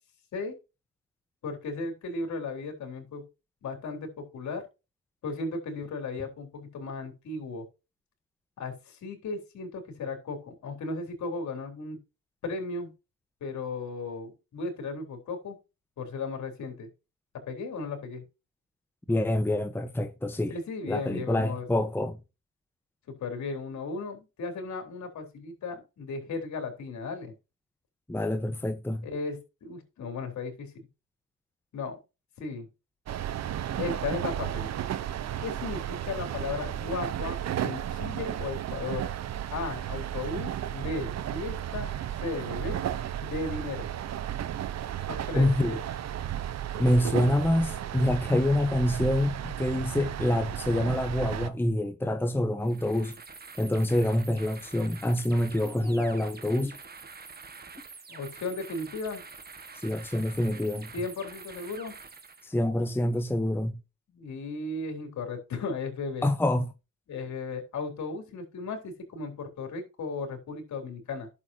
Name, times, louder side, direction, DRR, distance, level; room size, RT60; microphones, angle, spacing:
voice 1, 1.4-3.2 3.6-4.6 5.2-7.6 8.6-12.0 12.4-12.9 13.4-15.6 16.0-16.9 17.5-18.2 20.5-21.7 23.2-27.3 29.0-30.9 31.7-32.0 32.4-32.7 33.7-34.7 35.4-37.4 37.6-39.1 39.5-42.8 43.2-43.9 45.1-45.8 58.1-59.2 60.9-61.9 64.1-66.2 67.1-71.3, left 3 dB, 60° left, 4.0 m, -35 dB
voice 2, 19.1-20.5 20.9-22.2 28.1-29.1 45.4-45.8 46.8-53.2 53.6-56.8 59.8-60.9 62.4-63.8 66.2-66.7, left 1 dB, 5° left, 1.1 m, -26 dB
sound 1, 33.1-51.5, right 11 dB, 55° right, 1.0 m, -34 dB
sound 2, 52.6-62.5, right 4 dB, 30° right, 1.7 m, -47 dB
11.0 x 7.2 x 2.9 m
supercardioid pair, 75°, 32 cm